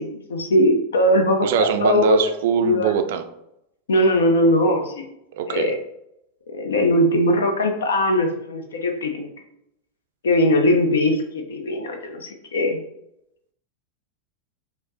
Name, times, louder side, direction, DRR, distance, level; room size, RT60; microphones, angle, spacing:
voice 1, 0.0-2.2 2.6-2.9 3.9-5.0 5.5-5.8 6.5-9.3 10.2-12.8, left 1 dB, 65° left, 5 dB, 0.5 m, -20 dB
voice 2, 1.4-3.2 5.4-5.7, right 8 dB, 55° right, 8 dB, 0.3 m, -22 dB
4.8 x 2.0 x 2.6 m, 0.80 s
figure-of-eight pair, 90°, 0 cm